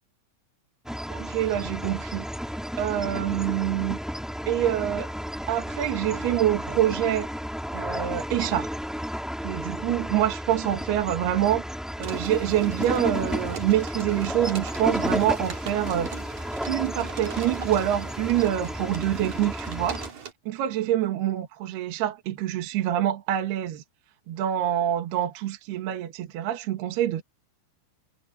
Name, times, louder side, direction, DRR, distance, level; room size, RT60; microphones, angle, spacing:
sound 1, 0.8-20.1, equal, ahead, 0.3 m, -33 dB
voice 1, 1.1-2.2 2.8-4.0 4.5-5.1 5.5-7.3 7.7-8.7 9.4-11.6 12.0-16.1 16.7-20.0 20.5-23.8 24.3-27.2, right 12 dB, 65° right, 3.1 m, -26 dB
sound 2, 12.0-20.3, right 6 dB, 40° right, 3.5 m, -42 dB
omnidirectional pair, 5.9 m